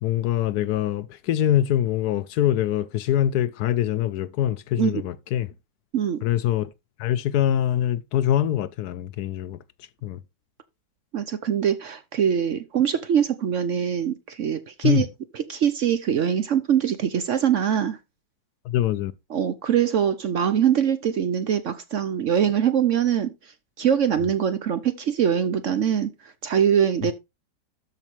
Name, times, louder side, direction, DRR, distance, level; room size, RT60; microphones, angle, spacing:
voice 1, 0.0-5.5 6.2-6.7 7.0-9.6 10.0-10.2 14.8-15.0 18.6-19.1, left 11 dB, 75° left, 1.1 m, -24 dB
voice 2, 5.9-6.2 11.1-15.1 15.3-18.0 19.3-23.5 23.8-27.1, right 8 dB, 60° right, 0.8 m, -23 dB
13.0 x 4.8 x 3.1 m
omnidirectional pair, 1.8 m